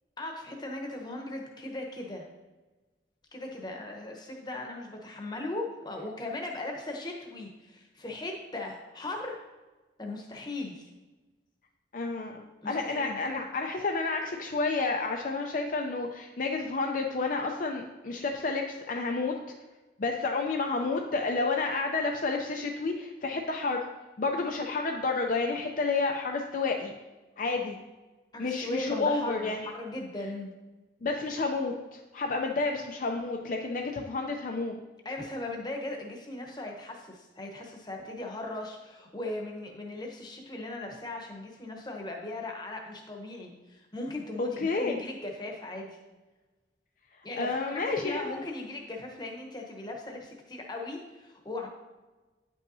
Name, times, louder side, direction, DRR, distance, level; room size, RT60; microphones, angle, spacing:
voice 1, 0.2-2.3 3.3-9.4 10.0-10.9 12.6-13.2 28.3-30.5 35.0-46.0 47.2-47.6 47.8-51.7, left 2 dB, 25° left, 1 dB, 0.9 m, -38 dB
voice 2, 11.9-19.4 20.0-23.9 24.2-26.9 27.4-27.8 28.4-29.7 31.0-34.8 44.4-45.0 47.4-48.5, left 3 dB, 45° left, 2 dB, 0.5 m, -30 dB
9.4 x 5.5 x 2.7 m, 1.2 s
head